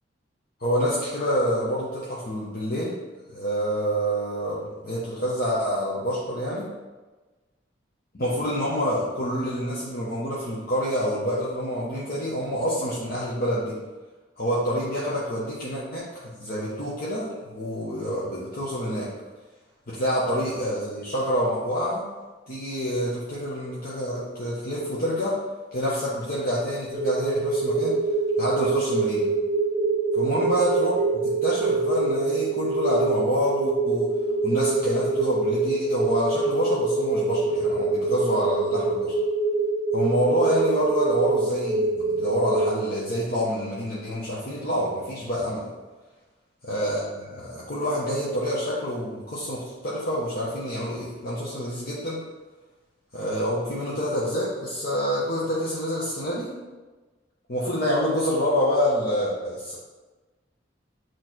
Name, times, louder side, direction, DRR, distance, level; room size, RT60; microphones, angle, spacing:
voice 1, 0.6-3.0 3.3-6.7 8.1-13.8 14.4-19.1 19.9-22.1 22.5-25.4 25.7-28.0 28.4-29.3 30.2-34.1 34.4-39.2 39.9-45.7 46.7-52.2 53.1-56.5 57.5-59.7, equal, 50° left, -7 dB, 1.0 m, -27 dB
sound 1, 26.9-42.8, right 3 dB, 15° right, 2.0 m, -25 dB
8.5 x 3.2 x 4.5 m, 1.3 s
head